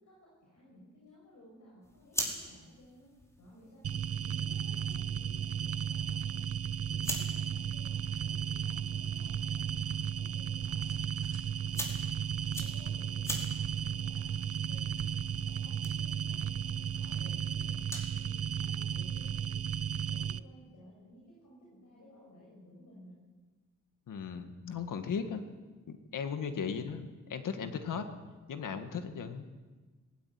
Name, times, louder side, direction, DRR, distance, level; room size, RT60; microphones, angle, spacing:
voice 1, 0.0-3.1 3.4-6.4 6.9-11.0 11.6-11.9 12.5-19.5 20.0-23.2 26.4-26.5, equal, 70° left, -5 dB, 7.8 m, -57 dB
sound 1, 1.8-18.2, equal, 10° left, 4.8 m, -45 dB
sound 2, 3.8-20.4, right 8 dB, 50° right, 0.6 m, -34 dB
sound 3, 8.0-15.6, right 1 dB, 10° right, 7.2 m, -58 dB
voice 2, 24.1-25.4 25.9-28.1 28.5-29.5, left 6 dB, 90° left, 7 dB, 1.9 m, -37 dB
19.0 x 16.5 x 9.5 m, 1.3 s
cardioid pair, 95°, 31 cm